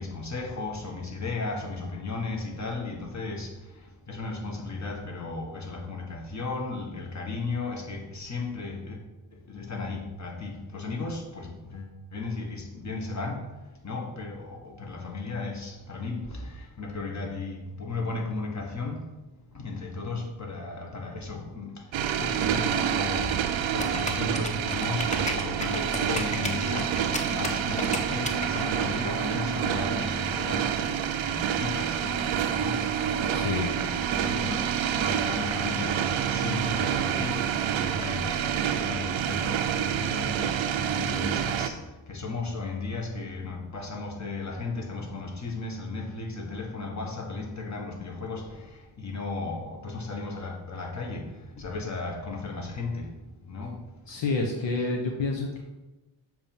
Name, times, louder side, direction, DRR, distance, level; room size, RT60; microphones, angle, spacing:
voice 1, 0.0-9.0 9.3-13.4 13.8-19.0 19.5-30.7 31.2-53.1 53.4-53.8, left 3 dB, 35° left, 1 dB, 1.5 m, -35 dB
sound 1, 21.9-41.7, right 9 dB, 80° right, 0.6 m, -28 dB
sound 2, 23.8-29.1, left 1 dB, 15° left, 0.9 m, -34 dB
sound 3, 28.6-28.7 29.0-30.4 30.6-31.2 31.4-32.4 32.7-32.9 33.1-34.0 34.2-34.4 34.6-35.2 35.5-36.0 36.3-36.4 36.7-37.3 37.6-37.7 38.0-38.1, right 2 dB, 5° right, 1.2 m, -45 dB
voice 2, 33.3-33.8 54.1-55.6, left 3 dB, 65° left, 1 dB, 0.9 m, -28 dB
6.9 x 3.1 x 5.4 m, 1.1 s
supercardioid pair, 45°, 46 cm